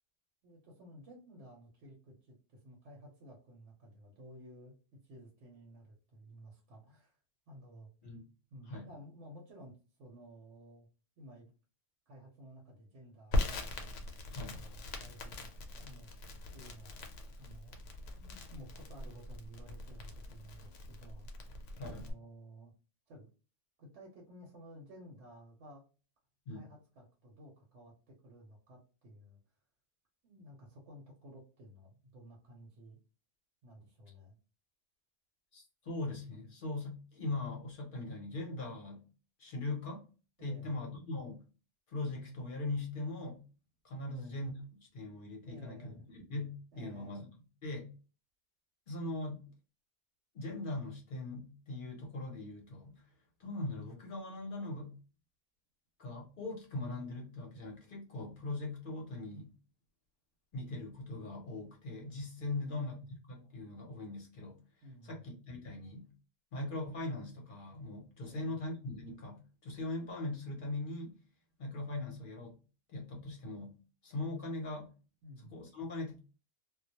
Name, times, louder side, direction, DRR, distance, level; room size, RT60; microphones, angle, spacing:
voice 1, 0.4-4.8 5.0-7.2 7.5-7.9 8.5-10.9 11.2-11.5 12.1-13.8 14.3-15.5 15.7-16.1 16.5-17.8 18.2-22.7 23.1-23.3 23.8-25.8 26.5-29.4 30.2-33.0 33.6-34.3 40.4-40.7 44.0-44.4 45.5-46.0 46.7-47.2 62.4-63.0 64.8-65.3 68.2-68.6 75.2-75.6, equal, 75° right, -2 dB, 1.0 m, -54 dB
Crackle, 13.3-22.1, left 1 dB, 80° left, 0.9 m, -40 dB
voice 2, 14.3-14.6 21.8-22.1 26.5-26.7 35.5-39.0 39.4-40.0 40.4-41.4 41.9-43.4 43.8-47.3 47.6-47.9 48.9-49.4 50.3-53.1 53.4-55.0 56.0-59.5 60.5-62.9 63.3-64.6 65.0-66.1 66.5-71.2 71.6-72.6 72.9-73.8 74.0-74.9 75.4-76.2, left 2 dB, 50° left, 0 dB, 0.8 m, -40 dB
2.2 x 2.0 x 2.8 m, 0.35 s
omnidirectional pair, 1.2 m